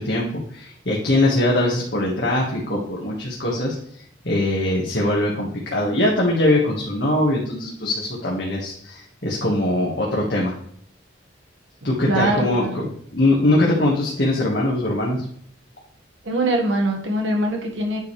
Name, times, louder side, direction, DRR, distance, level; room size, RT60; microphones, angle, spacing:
voice 1, 0.0-3.7 4.2-10.5 11.8-12.8 13.1-15.2, left 1 dB, 60° left, -4 dB, 1.7 m, -21 dB
voice 2, 12.0-12.8 16.2-18.0, right 1 dB, 80° right, 1 dB, 1.7 m, -22 dB
9.4 x 5.2 x 3.3 m, 0.64 s
head